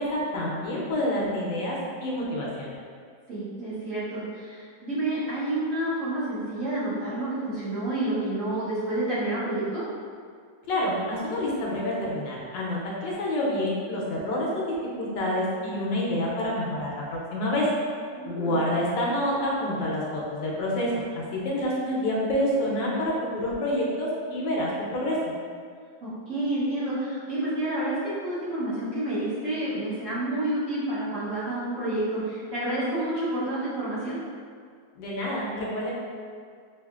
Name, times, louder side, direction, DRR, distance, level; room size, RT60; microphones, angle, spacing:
voice 1, 0.0-2.7 10.7-17.7 18.3-25.3 35.0-35.9, left 1 dB, 75° left, -4 dB, 1.3 m, -28 dB
voice 2, 3.3-9.8 18.1-18.6 26.0-34.2, right 1 dB, 50° right, -11 dB, 1.1 m, -29 dB
5.5 x 2.5 x 2.4 m, 2.1 s
omnidirectional pair, 2.0 m